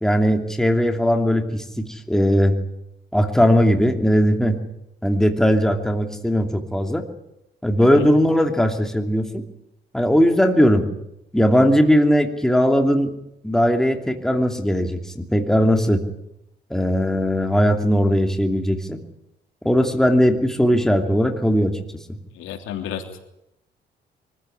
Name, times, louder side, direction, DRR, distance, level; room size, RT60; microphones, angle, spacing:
voice 1, 0.0-2.6 3.1-4.6 5.0-7.0 7.6-9.4 9.9-10.8 11.3-13.1 13.4-16.0 16.7-19.0 19.6-21.7 22.1-22.2, equal, ahead, 4 dB, 2.8 m, -19 dB
voice 2, 7.8-8.1 22.3-23.0, left 10 dB, 85° left, 4 dB, 3.3 m, -31 dB
24.0 x 15.0 x 9.9 m, 0.83 s
cardioid pair, 90°, 20 cm